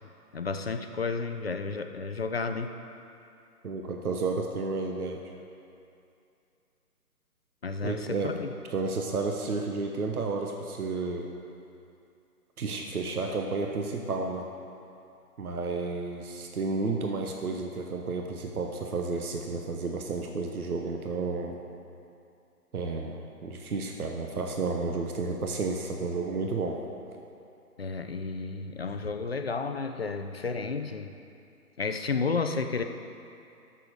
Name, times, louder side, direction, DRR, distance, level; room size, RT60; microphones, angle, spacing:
voice 1, 0.3-2.7 7.6-8.5 27.8-31.1 31.8-32.8, left 4 dB, 40° left, 7 dB, 0.5 m, -32 dB
voice 2, 3.6-5.2 7.8-8.4 8.7-11.3 12.6-14.5 15.4-21.5 22.7-26.8, right 3 dB, 65° right, 2 dB, 1.1 m, -31 dB
8.4 x 6.8 x 6.4 m, 2.6 s
figure-of-eight pair, 145°, 47 cm